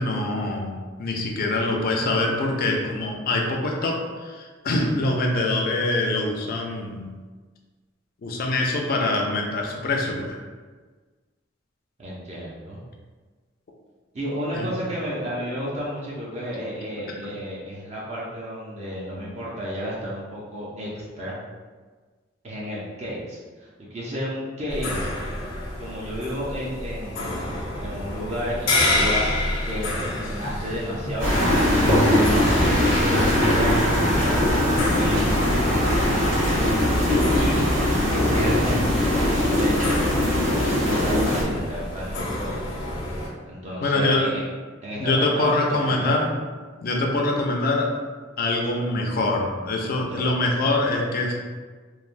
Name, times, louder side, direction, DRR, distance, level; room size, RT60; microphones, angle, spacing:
voice 1, 0.0-7.1 8.2-10.4 14.5-14.7 19.1-19.4 43.8-44.3 45.0-46.3 46.8-47.9 48.4-51.3, left 2 dB, 50° left, 1 dB, 0.4 m, -24 dB
voice 2, 12.0-12.8 14.1-21.4 22.4-25.1 25.8-27.5 27.8-29.3 29.6-31.6 32.2-35.4 37.3-37.7 38.1-42.8 43.5-44.4 44.8-46.2 50.1-50.4, equal, 35° right, -6 dB, 0.5 m, -32 dB
sound 1, 24.7-43.3, left 1 dB, 85° left, 0.7 m, -29 dB
sound 2, 31.2-41.4, left 1 dB, 85° right, 1.5 m, -21 dB
3.1 x 2.1 x 2.5 m, 1.4 s
head